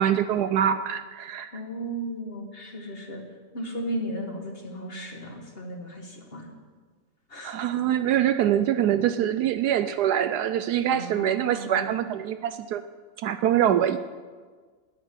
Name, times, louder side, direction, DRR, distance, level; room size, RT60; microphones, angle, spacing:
voice 1, 0.0-1.5 7.4-12.8 13.2-14.0, right 10 dB, 75° right, 11 dB, 1.0 m, -24 dB
voice 2, 1.5-3.2 3.5-6.5 7.3-7.6 10.9-12.0, right 1 dB, 35° left, 2 dB, 1.8 m, -35 dB
9.6 x 9.3 x 9.6 m, 1.5 s
omnidirectional pair, 1.9 m